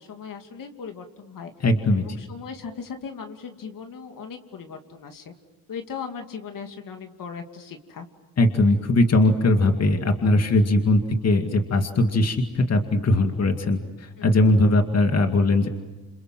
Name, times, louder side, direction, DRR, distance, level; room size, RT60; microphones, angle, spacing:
voice 1, 0.0-1.5 2.0-5.3 5.7-8.1 14.2-14.4, left 6 dB, 65° left, 5 dB, 2.7 m, -38 dB
voice 2, 1.6-2.0 8.4-15.7, left 2 dB, 45° left, 5 dB, 2.3 m, -20 dB
29.0 x 27.0 x 7.7 m, 1.2 s
cardioid pair, 90°, 35 cm